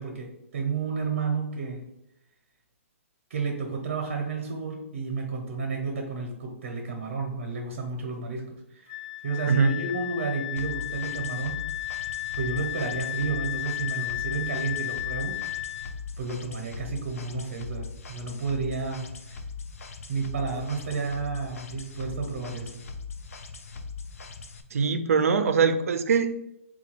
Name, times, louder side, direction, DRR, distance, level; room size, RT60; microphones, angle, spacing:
voice 1, 0.0-1.8 3.3-8.9 9.2-11.6 12.3-15.4 16.2-19.4 20.1-22.7, right 4 dB, 50° right, 1 dB, 0.7 m, -31 dB
Wind instrument woodwind instrument, 8.9-15.9, left 16 dB, 40° left, 0.7 m, -34 dB
voice 2, 9.5-9.8 24.7-26.4, right 5 dB, 90° right, 8 dB, 0.4 m, -22 dB
sound 1, 10.6-24.6, left 4 dB, 75° left, 0.5 m, -40 dB
3.9 x 2.3 x 4.4 m, 0.80 s
hypercardioid pair, 180°, 8 cm